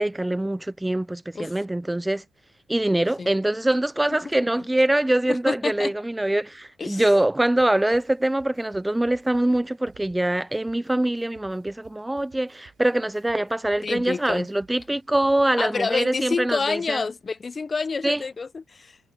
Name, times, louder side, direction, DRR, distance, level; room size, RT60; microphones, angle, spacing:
voice 1, 0.0-2.2 2.7-17.0 18.0-18.2, right 1 dB, 10° right, 0.4 m, -24 dB
voice 2, 5.3-5.9 6.8-7.0 13.8-14.5 15.6-19.0, left 4 dB, 35° left, 0.8 m, -28 dB
sound 1, 7.6-15.8, right 7 dB, 55° right, 5.9 m, -57 dB
cardioid pair, 90°, 0 cm